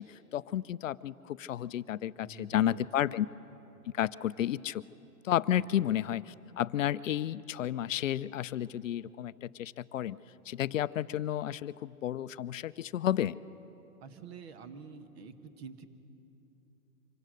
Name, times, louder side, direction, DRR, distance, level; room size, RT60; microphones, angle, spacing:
voice 1, 0.0-3.3 3.9-4.8 5.2-10.2 10.5-13.4, left 11 dB, 55° left, 17 dB, 0.5 m, -32 dB
voice 2, 2.2-2.8 5.5-5.7 14.0-15.9, right 5 dB, 40° right, 10 dB, 1.3 m, -47 dB
25.0 x 17.0 x 6.4 m, 3.0 s
hypercardioid pair, 140°, 47 cm